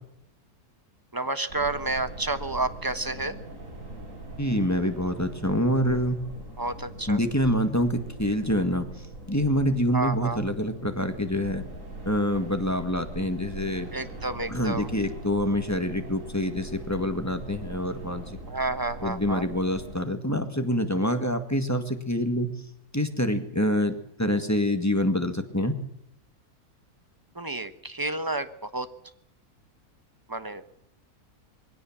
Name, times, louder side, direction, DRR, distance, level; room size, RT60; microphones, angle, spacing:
voice 1, 1.1-3.4 6.6-7.2 9.9-10.4 13.9-14.9 18.5-19.5 27.3-28.9 30.3-30.6, right 2 dB, 15° right, 11 dB, 1.2 m, -30 dB
sound 1, 1.5-20.0, right 1 dB, 55° right, 6.1 m, -41 dB
voice 2, 4.4-6.2 7.1-8.9 9.3-11.6 12.0-13.9 14.5-18.4 19.0-22.5 22.9-25.8, equal, 10° left, 8 dB, 1.8 m, -26 dB
22.5 x 17.0 x 7.4 m, 0.74 s
omnidirectional pair, 1.7 m